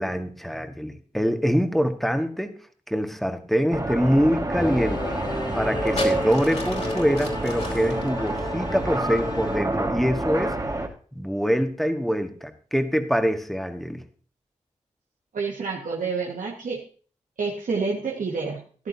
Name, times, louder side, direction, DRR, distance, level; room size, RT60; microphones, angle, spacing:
voice 1, 0.0-2.5 2.9-5.2 5.5-10.6 11.1-14.0, equal, ahead, 7 dB, 1.7 m, -24 dB
ambience - Moscow canal cranes in a distant port, 3.7-10.9, right 2 dB, 25° right, 1.8 m, -28 dB
Singing / Musical instrument, 4.6-9.6, left 2 dB, 35° left, 3.0 m, -33 dB
sound 1, 5.6-9.3 10.2-10.5, left 2 dB, 55° left, 3.6 m, -36 dB
voice 2, 15.3-16.8 17.4-18.9, right 4 dB, 90° right, -2 dB, 1.7 m, -29 dB
14.0 x 11.0 x 2.8 m, 0.42 s
cardioid pair, 50°, 13 cm